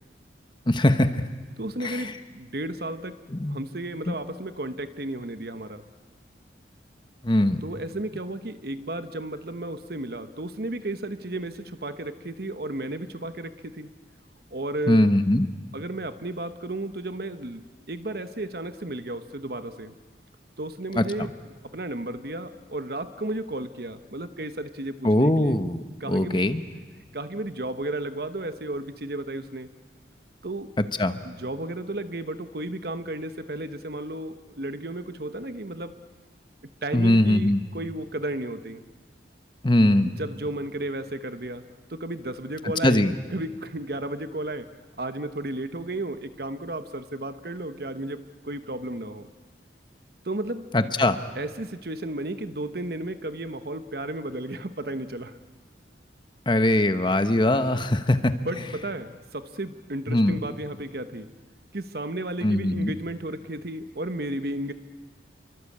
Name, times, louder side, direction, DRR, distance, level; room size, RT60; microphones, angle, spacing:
voice 1, 0.7-1.1 1.8-2.1 3.3-3.6 4.1-4.2 7.2-7.6 14.9-15.5 20.9-21.3 25.0-26.6 31.0-31.2 36.9-37.6 39.6-40.2 42.8-43.1 50.7-51.2 56.5-58.3 60.1-60.4 62.4-62.9, left 1 dB, 25° left, 10 dB, 1.1 m, -21 dB
voice 2, 1.6-3.2 3.5-5.8 7.6-13.9 14.5-15.1 15.7-17.6 17.9-19.9 20.6-21.3 21.6-25.6 26.0-26.4 27.1-29.7 30.4-30.7 31.2-36.0 36.8-38.8 40.0-41.6 41.9-43.0 43.3-44.7 45.0-49.3 50.2-50.9 51.4-55.4 58.2-61.3 61.7-64.7, right 1 dB, 55° right, 10 dB, 1.1 m, -33 dB
28.5 x 24.0 x 8.6 m, 1.4 s
head